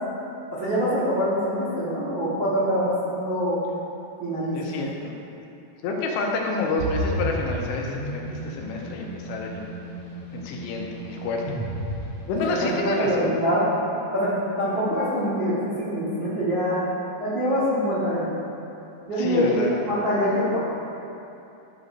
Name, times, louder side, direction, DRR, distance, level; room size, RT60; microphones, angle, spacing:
voice 1, 0.5-3.6 4.2-4.6 12.6-13.7 14.1-16.8 17.2-18.3 19.1-20.6, equal, 85° right, -12 dB, 1.0 m, -24 dB
voice 2, 4.5-5.1 5.8-9.6 10.3-11.6 12.3-13.3 19.2-19.7, left 3 dB, 85° left, -1 dB, 2.9 m, -28 dB
sound 1, 6.8-12.7, right 1 dB, 55° left, 1.6 m, -33 dB
12.0 x 6.7 x 2.6 m, 2.8 s
omnidirectional pair, 5.1 m